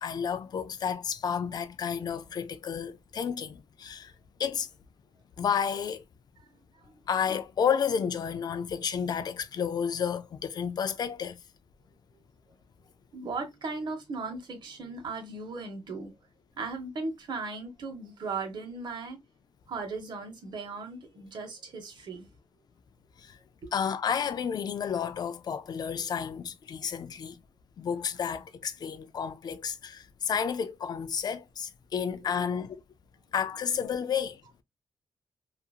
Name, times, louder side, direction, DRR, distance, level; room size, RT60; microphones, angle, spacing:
voice 1, 0.0-4.1 4.4-4.7 5.4-6.0 7.1-11.4 23.2-23.4 23.7-27.4 27.8-32.8 33.3-34.4, left 7 dB, 45° left, 0.4 m, -31 dB
voice 2, 13.1-16.1 16.6-19.2 19.7-22.3 23.6-23.7 32.0-32.3, right 4 dB, 50° right, 1.0 m, -37 dB
2.8 x 2.5 x 2.3 m
wide cardioid pair, 130°, 9 cm